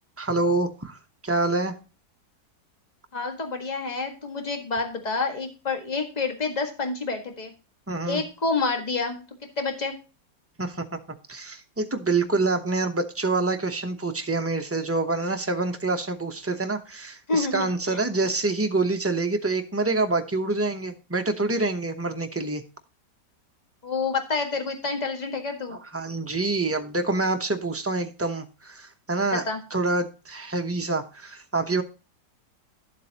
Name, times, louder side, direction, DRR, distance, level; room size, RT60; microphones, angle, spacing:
voice 1, 0.2-1.7 7.9-8.2 10.6-11.0 11.3-22.6 25.7-29.4 29.7-31.8, right 3 dB, 15° right, 5 dB, 0.6 m, -26 dB
voice 2, 3.1-7.5 8.1-9.2 9.6-10.0 17.3-18.0 23.8-25.8 29.3-29.6, left 4 dB, 25° left, 4 dB, 1.7 m, -28 dB
11.5 x 7.6 x 2.9 m, 0.32 s
omnidirectional pair, 1.9 m